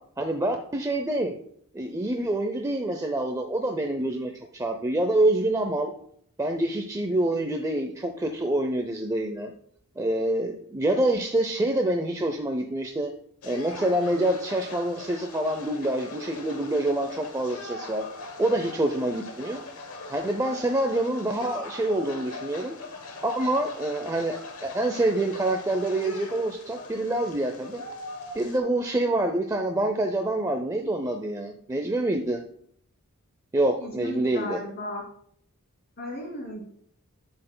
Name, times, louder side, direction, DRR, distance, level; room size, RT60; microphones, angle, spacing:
voice 1, 0.2-1.4 1.7-5.9 6.4-9.5 10.0-13.1 13.4-18.0 18.4-19.6 20.1-22.8 23.2-27.8 28.3-32.4 33.5-34.6, right 1 dB, 15° right, 5 dB, 0.5 m, -26 dB
sound 1, 13.4-28.6, left 2 dB, 70° left, 1.1 m, -41 dB
voice 2, 33.8-35.0 36.0-36.6, left 1 dB, 45° left, 0 dB, 2.6 m, -35 dB
11.0 x 7.8 x 2.2 m, 0.65 s
head